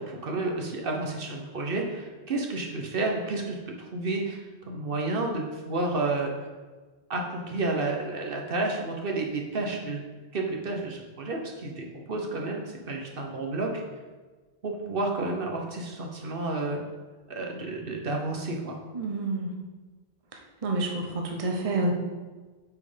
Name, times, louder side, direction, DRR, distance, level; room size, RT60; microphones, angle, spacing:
voice 1, 0.0-3.6 3.9-6.3 7.1-10.0 10.3-13.8 14.6-16.8 17.3-18.8, right 2 dB, 65° right, 1 dB, 1.2 m, -31 dB
voice 2, 18.9-19.5 20.6-21.9, right 2 dB, 35° right, 1 dB, 0.9 m, -28 dB
8.5 x 4.4 x 5.0 m, 1.3 s
omnidirectional pair, 1.0 m